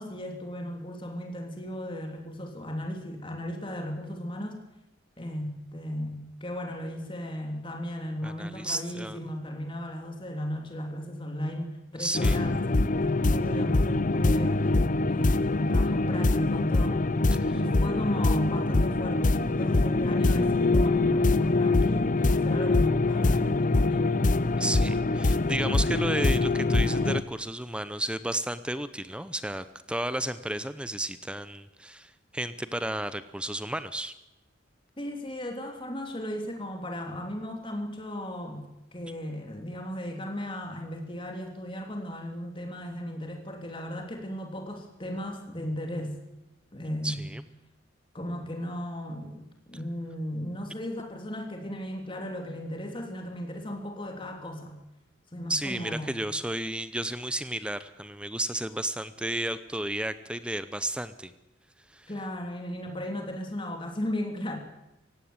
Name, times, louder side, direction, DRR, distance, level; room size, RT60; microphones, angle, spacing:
voice 1, 0.0-4.6 5.2-12.6 13.0-14.7 15.1-17.0 17.5-24.4 35.0-38.6 38.9-46.1 46.7-47.2 48.1-54.8 55.3-56.2 62.1-64.6, equal, 25° left, 3 dB, 3.2 m, -35 dB
voice 2, 8.2-9.2 12.0-12.4 17.3-17.5 24.6-34.1 47.0-47.4 55.5-61.3 61.9-62.1, right 1 dB, 5° right, 13 dB, 0.7 m, -32 dB
sound 1, 12.1-27.2, left 2 dB, 40° left, 0.7 m, -24 dB
17.5 x 16.0 x 9.6 m, 0.92 s
head